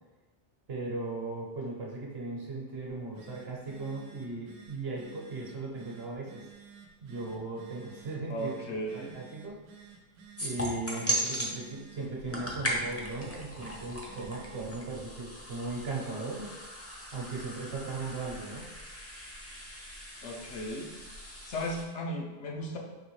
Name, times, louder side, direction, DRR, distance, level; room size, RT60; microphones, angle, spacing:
voice 1, 0.7-6.4 7.0-8.5 8.9-9.5 10.4-16.5 17.1-18.7, right 3 dB, 55° right, -3 dB, 1.1 m, -37 dB
Telephone, 2.9-14.8, right 7 dB, 85° right, 1.0 m, -53 dB
voice 2, 8.3-9.2 20.2-20.9 21.5-22.8, equal, 70° left, 0 dB, 0.9 m, -36 dB
sound 1, 10.4-11.5 12.1-21.8, right 1 dB, 20° left, 0.4 m, -38 dB
4.9 x 3.0 x 3.1 m, 1.2 s
omnidirectional pair, 1.3 m